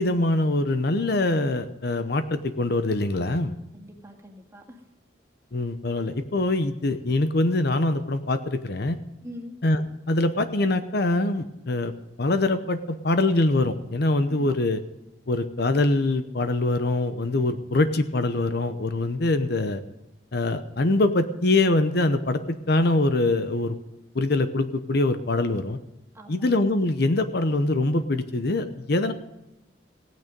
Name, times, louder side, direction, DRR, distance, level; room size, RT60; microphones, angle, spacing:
voice 1, 0.0-3.6 5.5-9.0 9.6-9.8 10.1-11.9 12.2-14.8 15.3-19.8 20.3-23.8 24.1-25.8 26.3-29.1, left 2 dB, 60° left, 10 dB, 0.8 m, -23 dB
voice 2, 3.7-4.8 9.2-9.6 14.3-14.6 26.1-26.5, left 1 dB, 15° right, 1 dB, 2.0 m, -43 dB
17.0 x 9.3 x 5.2 m, 0.96 s
head